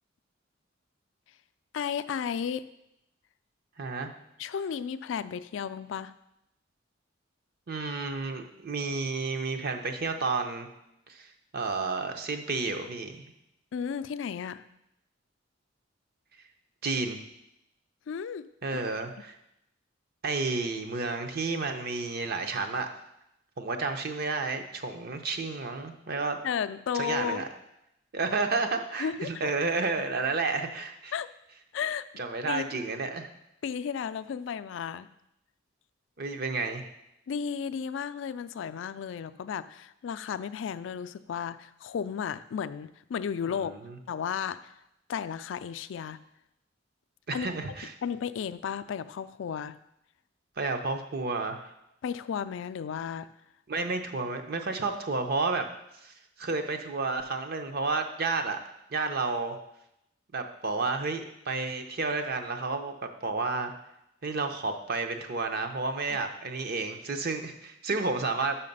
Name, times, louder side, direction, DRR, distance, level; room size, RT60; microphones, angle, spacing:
voice 1, 1.7-2.6 4.4-6.1 13.7-14.6 18.1-18.4 26.4-27.4 29.0-29.3 31.1-31.3 31.7-32.0 32.5-32.7 33.6-35.1 37.3-43.7 44.1-44.7 45.1-46.2 47.3-47.5 48.0-49.8 52.0-53.3, left 7 dB, 70° left, 13 dB, 0.3 m, -33 dB
voice 2, 3.8-4.1 7.7-10.7 11.1-13.3 16.8-17.2 18.6-19.3 20.2-22.9 23.6-26.4 26.9-27.5 28.1-31.1 32.2-33.3 36.2-36.8 43.5-44.0 47.3-47.9 50.6-51.7 53.7-55.7 56.0-56.1 56.4-58.6 58.9-59.6 60.3-62.9 63.2-63.7 64.2-68.6, right 3 dB, 50° right, 6 dB, 0.7 m, -31 dB
5.7 x 5.7 x 5.4 m, 0.83 s
head